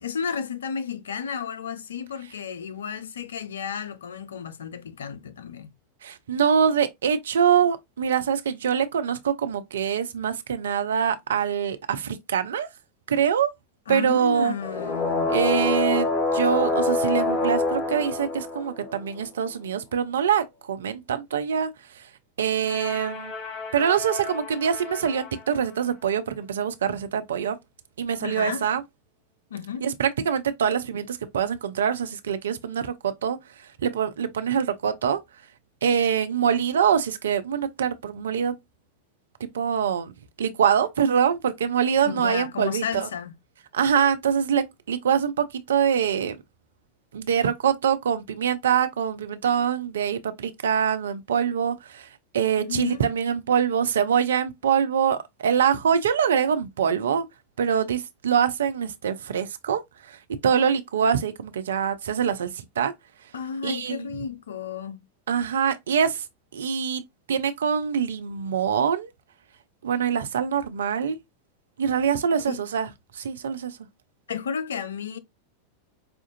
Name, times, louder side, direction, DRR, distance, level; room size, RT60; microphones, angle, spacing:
voice 1, 0.0-5.7 13.9-15.3 28.2-28.6 29.5-29.8 42.0-43.3 52.6-53.0 63.3-65.1 72.5-72.6 74.3-75.2, left 7 dB, 65° left, 0.5 m, -32 dB
voice 2, 6.0-12.7 13.1-13.5 13.9-14.5 15.3-22.1 22.4-23.3 23.7-27.6 28.0-28.8 29.8-35.2 35.8-38.6 39.4-43.1 43.7-46.4 47.1-57.3 57.6-62.9 63.2-63.3 63.6-64.1 65.3-66.3 66.5-67.0 67.3-69.1 69.8-71.2 71.8-73.8, right 7 dB, 65° right, 0.5 m, -24 dB
sound 1, 14.6-19.2 22.6-25.4, left 3 dB, 30° left, 1.0 m, -27 dB
5.0 x 2.4 x 2.5 m
figure-of-eight pair, 90°, 0 cm